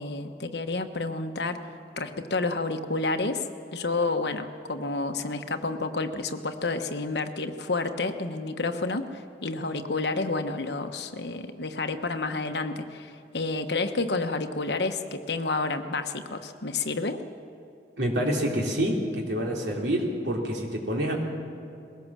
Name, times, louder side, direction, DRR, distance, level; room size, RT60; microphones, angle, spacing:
voice 1, 0.0-1.6 2.0-17.2, left 3 dB, 70° left, 6 dB, 1.1 m, -30 dB
voice 2, 18.0-21.2, equal, 80° right, 0 dB, 3.2 m, -27 dB
21.0 x 17.5 x 7.4 m, 2.6 s
head